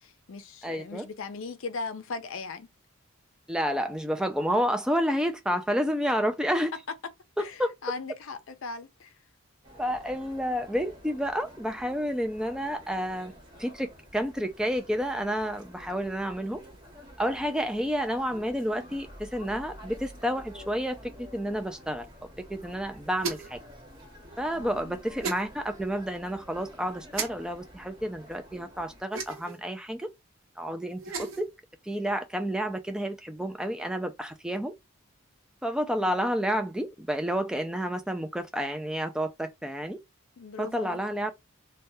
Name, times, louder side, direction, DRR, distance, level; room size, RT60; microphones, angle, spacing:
voice 1, 0.0-2.7 7.4-9.1 24.5-25.0 40.4-41.0, left 4 dB, 70° left, 0.5 m, -38 dB
voice 2, 0.6-1.1 3.5-6.7 7.4-7.7 9.8-13.3 13.6-16.6 17.2-22.1 22.5-23.6 24.4-30.1 30.6-31.5 31.8-34.7 35.6-40.0 40.6-41.3, equal, 5° right, 0.3 m, -30 dB
sound 1, 9.6-29.0, equal, 20° right, 1.4 m, -50 dB
sound 2, 23.2-23.6 25.2-25.4 27.1-27.3 29.1-29.6 30.9-31.4, right 5 dB, 75° right, 0.8 m, -34 dB
3.2 x 2.2 x 2.7 m
head